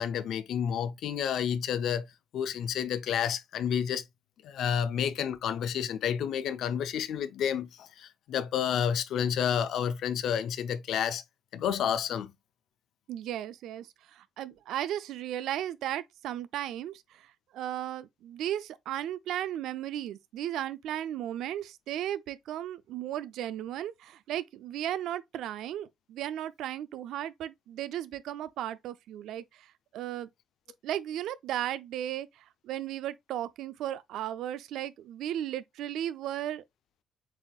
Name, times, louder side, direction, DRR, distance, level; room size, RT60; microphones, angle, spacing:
voice 1, 0.0-2.1 2.3-4.0 4.4-11.2 11.5-12.3, left 8 dB, 75° left, 0.5 m, -30 dB
voice 2, 13.1-30.3 30.8-36.6, right 12 dB, 85° right, 0.4 m, -35 dB
7.5 x 2.7 x 2.3 m
cardioid pair, 90°, 0 cm